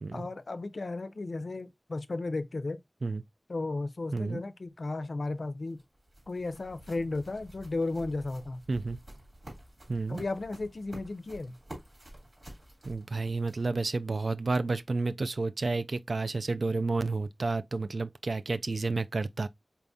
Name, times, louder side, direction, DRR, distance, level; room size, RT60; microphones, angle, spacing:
voice 1, 0.1-2.8 3.5-5.8 6.3-8.6 10.1-11.6, left 2 dB, 80° left, 0.4 m, -34 dB
sound 1, 5.3-13.9, right 1 dB, 55° right, 2.9 m, -50 dB
voice 2, 9.9-10.2 12.8-19.5, right 3 dB, 85° right, 0.3 m, -31 dB
4.2 x 3.5 x 2.5 m
wide cardioid pair, 50°, 0 cm